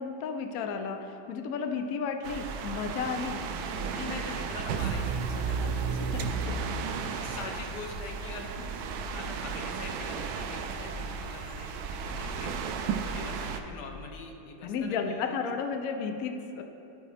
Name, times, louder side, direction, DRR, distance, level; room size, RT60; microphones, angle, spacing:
voice 1, 0.0-3.5 5.6-5.7 6.1-6.7 14.6-16.6, left 5 dB, 85° left, 6 dB, 0.7 m, -33 dB
hummingbird-at-feeder, 2.2-13.6, right 5 dB, 80° right, 1.4 m, -33 dB
voice 2, 3.8-6.2 7.0-8.5 9.1-15.3, left 3 dB, 65° left, 3 dB, 1.3 m, -43 dB
15.0 x 5.2 x 3.3 m, 2.8 s
omnidirectional pair, 2.2 m